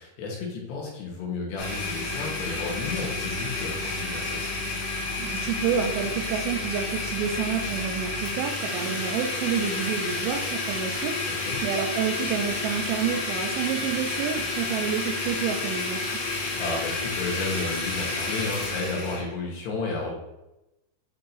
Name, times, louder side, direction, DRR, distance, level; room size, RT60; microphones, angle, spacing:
voice 1, 0.0-4.4 11.4-11.6 16.2-20.1, left 3 dB, 80° left, -2 dB, 3.4 m, -32 dB
Domestic sounds home sounds, 1.6-19.2, left 3 dB, 50° left, 2.7 m, -30 dB
voice 2, 5.2-11.2 11.6-16.0, right 7 dB, 80° right, 4 dB, 2.9 m, -29 dB
8.5 x 4.2 x 2.7 m, 0.93 s
omnidirectional pair, 4.9 m